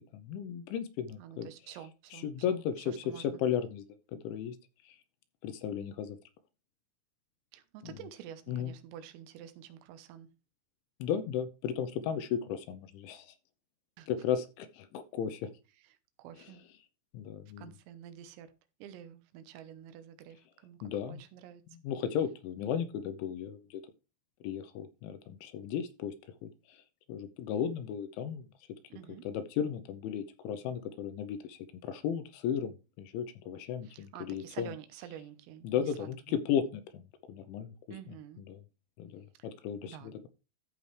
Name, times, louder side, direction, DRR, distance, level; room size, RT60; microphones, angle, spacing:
voice 1, 0.1-1.5 2.1-3.8 4.1-4.6 4.9-5.0 5.4-6.2 7.8-7.9 8.5-8.7 11.0-13.3 14.1-15.5 17.1-17.6 20.8-21.2 21.8-23.8 24.4-26.1 26.4-26.8 27.1-28.5 29.2-34.7 35.6-37.0 37.3-37.7 38.4-38.6 39.0-40.0, left 8 dB, 80° left, 3.0 m, -35 dB
voice 2, 1.2-3.4 7.5-10.3 14.0-14.1 15.8-16.6 17.6-18.5 18.8-21.6 28.9-29.3 33.8-36.1 37.9-38.5 39.4-39.5 39.8-40.1, right 10 dB, 85° right, 3.7 m, -49 dB
14.0 x 5.4 x 3.2 m
omnidirectional pair, 5.9 m